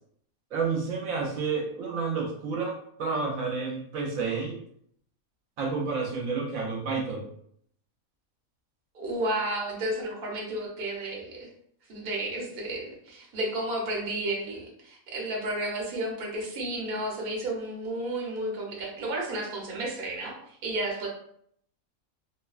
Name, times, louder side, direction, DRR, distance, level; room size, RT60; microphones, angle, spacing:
voice 1, 0.5-4.6 5.6-7.3, right 4 dB, 75° right, -1 dB, 1.0 m, -30 dB
voice 2, 8.9-11.5 11.9-20.3 20.6-21.1, right 1 dB, 50° right, -2 dB, 0.8 m, -32 dB
2.7 x 2.1 x 2.3 m, 0.67 s
omnidirectional pair, 1.5 m